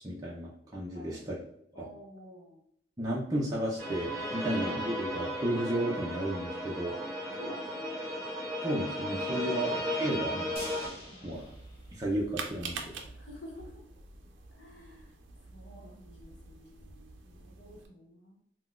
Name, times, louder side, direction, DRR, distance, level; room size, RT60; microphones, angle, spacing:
voice 1, 0.0-1.4 1.8-1.9 3.0-6.9 8.6-10.6 11.2-11.4 12.0-12.8, right 1 dB, 20° right, -5 dB, 0.5 m, -33 dB
voice 2, 0.9-1.2 1.7-2.6 4.3-4.5 6.9-7.0 7.4-8.0 9.2-9.7 11.0-11.5 13.2-13.8 14.6-15.1 15.5-18.4, left 1 dB, 65° left, -3 dB, 0.9 m, -50 dB
sound 1, 3.8-10.9, equal, 15° left, 1.3 m, -35 dB
sound 2, 10.6-12.7 13.0-13.1 13.5-13.6, left 1 dB, 35° left, 1.3 m, -47 dB
sound 3, 11.3-17.9, right 4 dB, 80° right, 0.5 m, -46 dB
3.7 x 2.3 x 2.4 m, 0.70 s
head